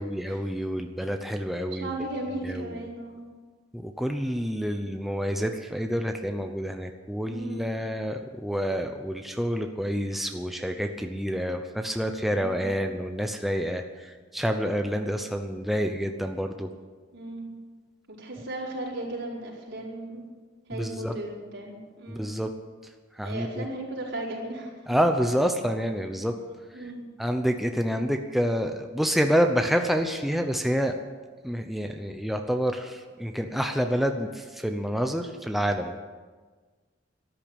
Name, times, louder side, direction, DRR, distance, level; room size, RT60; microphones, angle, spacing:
voice 1, 0.0-1.9 2.4-2.8 3.7-16.7 20.7-21.2 22.1-22.5 23.1-23.7 24.9-26.3 26.7-26.8 27.2-31.0 31.4-36.0, equal, ahead, 4 dB, 0.8 m, -28 dB
voice 2, 1.8-3.2 7.3-7.8 12.3-12.7 17.1-17.5 18.1-20.2 20.7-22.4 23.2-24.7 26.7-27.0, right 2 dB, 85° right, -3 dB, 4.8 m, -36 dB
13.5 x 10.5 x 8.8 m, 1.4 s
head